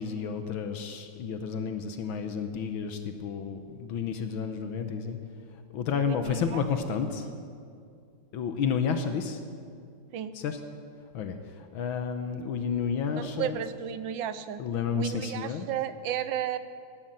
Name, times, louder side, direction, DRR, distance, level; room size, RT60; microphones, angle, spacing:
voice 1, 0.0-5.2 5.7-7.3 8.3-9.4 10.3-10.6 11.1-13.6 14.6-15.7, left 6 dB, 75° left, 7 dB, 1.7 m, -31 dB
voice 2, 5.9-6.6 10.1-10.4 13.1-14.6 14.9-16.6, right 10 dB, 75° right, 12 dB, 1.4 m, -33 dB
16.0 x 11.5 x 7.8 m, 2.3 s
omnidirectional pair, 2.3 m